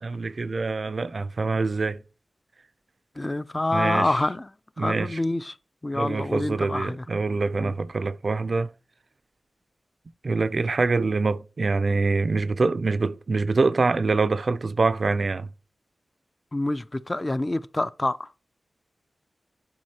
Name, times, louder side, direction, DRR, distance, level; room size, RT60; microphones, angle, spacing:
voice 1, 0.0-2.0 3.7-4.2 4.8-5.2 5.9-8.7 10.2-15.5, right 3 dB, 55° right, 0.4 m, -25 dB
voice 2, 3.2-4.5 4.8-5.5 5.8-7.0 7.6-7.7 16.5-18.3, left 2 dB, 25° left, 0.3 m, -27 dB
10.5 x 4.6 x 2.8 m
wide cardioid pair, 85°, 0 cm